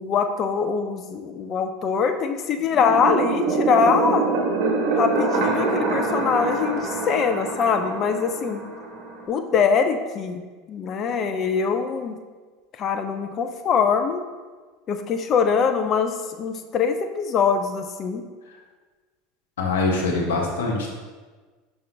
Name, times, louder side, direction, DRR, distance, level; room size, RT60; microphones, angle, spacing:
voice 1, 0.0-4.2 5.0-8.6 9.3-10.4 10.7-12.1 12.8-14.2 14.9-18.2, left 6 dB, 40° left, 7 dB, 0.5 m, -23 dB
sound 1, 2.7-9.3, right 3 dB, 55° right, 1.1 m, -25 dB
voice 2, 19.6-20.9, left 3 dB, 75° left, -1 dB, 1.2 m, -23 dB
5.6 x 5.3 x 3.3 m, 1.4 s
hypercardioid pair, 80°, 0 cm